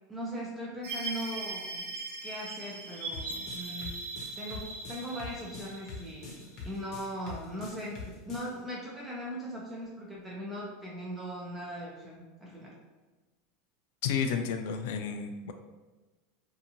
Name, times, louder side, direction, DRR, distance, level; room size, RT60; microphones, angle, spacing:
voice 1, 0.1-1.9 2.2-4.0 4.4-12.7, equal, 15° right, -4 dB, 0.5 m, -39 dB
sound 1, 0.8-7.1, right 3 dB, 85° right, 0.8 m, -40 dB
sound 2, 3.1-8.5, left 4 dB, 40° left, 0.7 m, -44 dB
voice 2, 14.0-15.5, left 6 dB, 70° left, 7 dB, 0.3 m, -31 dB
2.8 x 2.4 x 2.5 m, 1.2 s
supercardioid pair, 145°, 0 cm